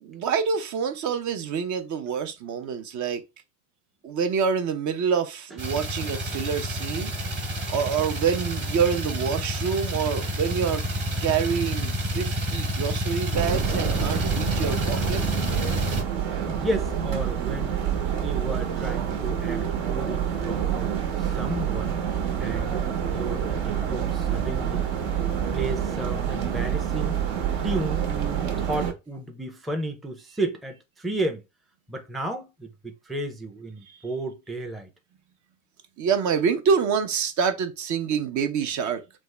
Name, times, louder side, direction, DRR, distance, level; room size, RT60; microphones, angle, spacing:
voice 1, 0.0-3.2 4.0-7.1 7.7-10.8 11.2-15.2 36.0-39.0, right 6 dB, 45° right, 0.6 m, -26 dB
sound 1, 5.6-16.0, equal, 25° right, 1.2 m, -29 dB
sound 2, 13.3-28.9, right 9 dB, 70° right, 1.1 m, -27 dB
voice 2, 16.5-17.8 18.2-20.9 21.2-22.0 22.4-24.9 25.5-27.2 27.6-31.4 31.9-34.9, right 1 dB, ahead, 0.5 m, -33 dB
3.4 x 2.0 x 3.2 m
supercardioid pair, 95°, 40 cm